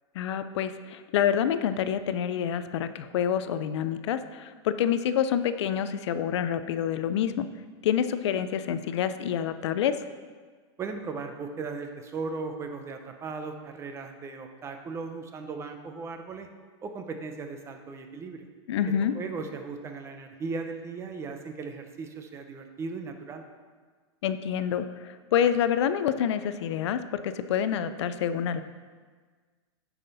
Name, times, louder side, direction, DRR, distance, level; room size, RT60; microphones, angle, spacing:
voice 1, 0.2-7.5 7.8-10.0 18.7-19.1 24.2-28.6, left 9 dB, 70° left, 11 dB, 0.5 m, -27 dB
voice 2, 10.8-16.5 16.8-18.5 19.1-23.4, right 4 dB, 20° right, 6 dB, 0.6 m, -37 dB
9.3 x 5.8 x 4.0 m, 1.5 s
supercardioid pair, 150°, 15 cm